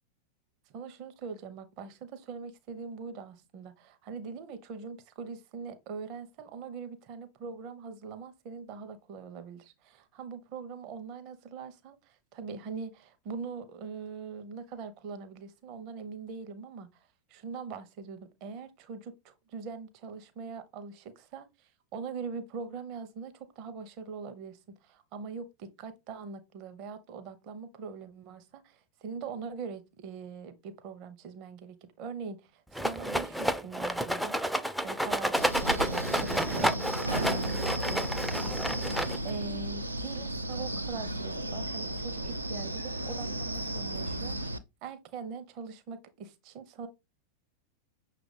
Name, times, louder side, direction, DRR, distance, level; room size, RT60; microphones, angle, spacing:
voice 1, 0.7-34.3 34.8-36.7 37.0-38.8 39.2-44.5 44.8-46.9, right 5 dB, 40° right, 0.7 m, -42 dB
Rattle, 32.7-39.4, equal, ahead, 0.3 m, -30 dB
Wind, 35.4-44.6, right 1 dB, 85° right, 0.4 m, -34 dB
6.1 x 2.4 x 3.2 m
figure-of-eight pair, 90°, 0 cm